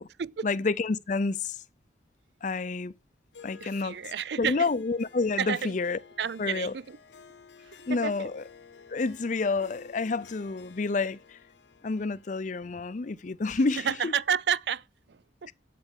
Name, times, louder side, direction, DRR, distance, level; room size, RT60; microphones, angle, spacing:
voice 1, 0.4-1.6 2.4-2.9 3.4-4.1 4.4-6.0 6.4-6.7 7.9-8.4 8.9-11.4 11.8-14.1, left 3 dB, 45° left, 0.5 m, -29 dB
Harp, 3.3-13.9, left 6 dB, 85° left, 1.0 m, -54 dB
voice 2, 3.6-4.7 5.4-5.7 6.2-7.0 7.6-8.3 13.8-15.5, right 7 dB, 70° right, 0.5 m, -31 dB
8.4 x 8.0 x 6.5 m
head